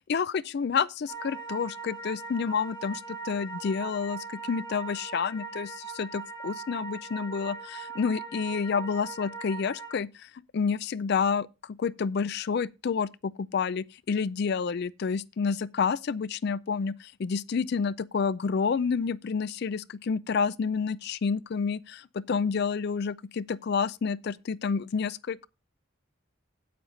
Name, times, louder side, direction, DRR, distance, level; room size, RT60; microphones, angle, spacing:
voice 1, 0.1-25.5, left 5 dB, 55° left, 0.4 m, -29 dB
sound 1, 1.1-9.9, right 5 dB, 20° left, 1.6 m, -40 dB
8.8 x 8.5 x 3.8 m
head